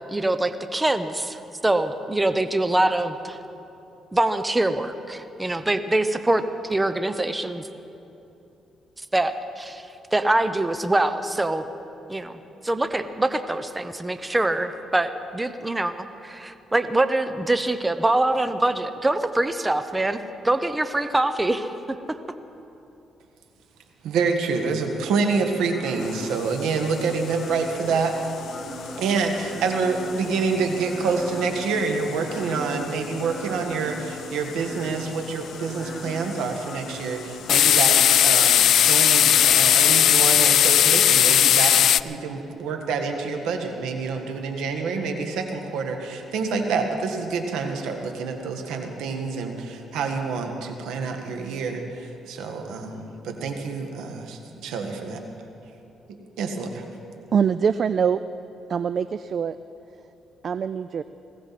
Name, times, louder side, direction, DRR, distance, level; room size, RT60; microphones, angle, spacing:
voice 1, 0.1-3.4 4.1-7.7 9.0-11.7 12.1-22.2, right 2 dB, 15° right, 10 dB, 0.8 m, -24 dB
voice 2, 24.0-28.1 29.0-38.0 38.2-55.2 56.4-56.8, right 4 dB, 85° right, 4 dB, 1.6 m, -27 dB
sound 1, 24.9-39.4, right 1 dB, 10° left, 1.7 m, -41 dB
sound 2, 26.2-26.3 26.7-26.8 27.0-27.3 27.7-28.5 28.8-30.0 30.3-31.7 32.2-32.3 32.6-32.7 33.1-33.5 33.8-34.3 34.8-35.1 35.6-36.2 36.6-36.8 37.5-42.0, left 10 dB, 70° left, 0.3 m, -18 dB
voice 3, 57.3-58.2 58.7-59.6 60.4-61.0, right 7 dB, 50° right, 13 dB, 0.3 m, -23 dB
20.0 x 16.0 x 4.3 m, 2.8 s
cardioid pair, 90°, 0 cm